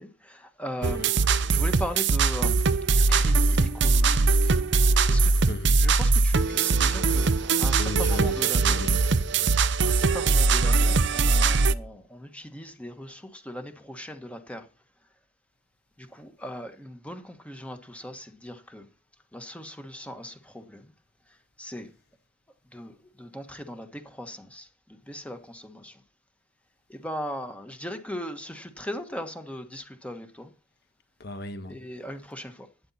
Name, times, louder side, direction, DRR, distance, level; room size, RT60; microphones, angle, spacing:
voice 1, 0.0-4.6 5.1-5.3 5.7-8.9 9.8-14.7 16.0-18.9 19.3-20.9 21.6-21.9 22.7-26.0 26.9-30.5 31.7-32.7, equal, 5° left, 1.3 m, -39 dB
sound 1, 0.8-11.7, right 3 dB, 60° right, 0.7 m, -21 dB
voice 2, 5.5-5.9 7.8-9.7 31.2-31.9, left 2 dB, 50° left, 1.4 m, -37 dB
12.0 x 9.8 x 4.2 m
head